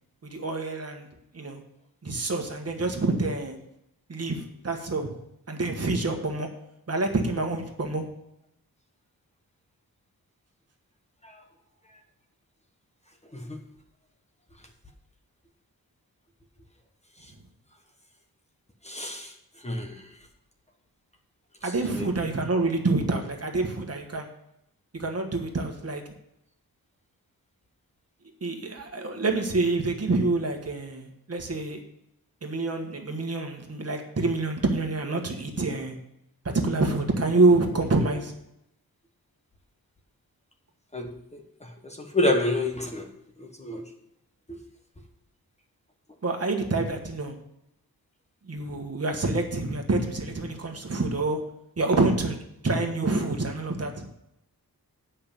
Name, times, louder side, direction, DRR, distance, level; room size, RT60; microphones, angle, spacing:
voice 1, 0.3-1.1 1.3-1.6 2.0-3.5 4.1-5.1 5.5-6.5 6.9-8.1 21.6-24.3 24.9-26.0 28.4-31.8 32.4-35.9 36.4-38.3 46.2-47.3 48.5-51.4 51.8-52.4 52.6-54.0, right 3 dB, 40° right, 3 dB, 1.4 m, -27 dB
voice 2, 18.8-19.3 19.6-20.0 21.9-22.1 40.9-43.1 43.4-43.8 44.5-44.6, left 1 dB, 20° left, 3 dB, 1.2 m, -29 dB
9.6 x 5.7 x 6.8 m, 0.80 s
wide cardioid pair, 150°, 37 cm